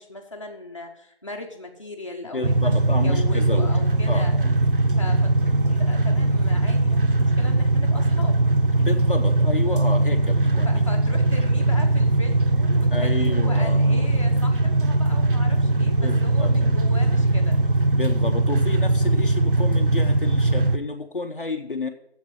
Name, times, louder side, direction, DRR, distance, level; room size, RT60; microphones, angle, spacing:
voice 1, 0.0-4.3 5.0-8.4 10.6-17.6, left 2 dB, 30° left, 1 dB, 1.0 m, -38 dB
voice 2, 2.3-3.7 4.1-4.5 8.8-10.8 11.2-11.4 12.9-14.0 15.8-16.7 17.9-21.9, left 3 dB, 55° left, 4 dB, 0.8 m, -31 dB
sound 1, 2.4-20.8, right 2 dB, 55° right, 0.6 m, -20 dB
7.5 x 7.4 x 8.2 m, 0.75 s
figure-of-eight pair, 170°, 33 cm